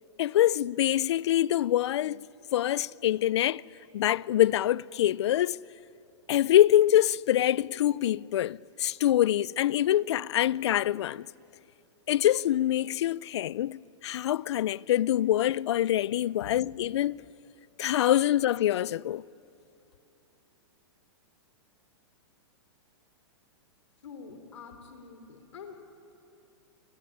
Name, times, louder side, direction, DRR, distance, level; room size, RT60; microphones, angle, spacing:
voice 1, 0.2-2.2 2.5-3.6 3.9-5.6 6.3-11.3 12.1-17.2 17.8-19.2, left 12 dB, 70° left, 0.5 m, -25 dB
voice 2, 24.0-25.8, left 5 dB, 90° left, 3.3 m, -46 dB
28.0 x 19.5 x 9.8 m
hypercardioid pair, 150°, 15 cm